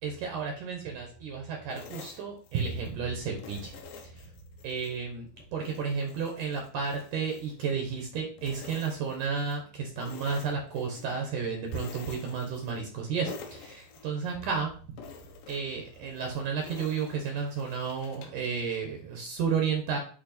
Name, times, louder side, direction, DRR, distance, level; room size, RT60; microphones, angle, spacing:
voice 1, 0.0-3.7 4.1-4.2 4.6-5.3 5.5-14.7 15.5-20.0, right 5 dB, 65° right, 2 dB, 2.3 m, -32 dB
sound 1, 1.7-3.0 3.4-5.0 5.4-8.1 8.4-9.6 10.0-11.2 11.7-13.0 13.3-14.6 15.0-18.5, left 5 dB, 75° left, 2.7 m, -48 dB
8.6 x 3.1 x 4.1 m, 0.42 s
omnidirectional pair, 4.2 m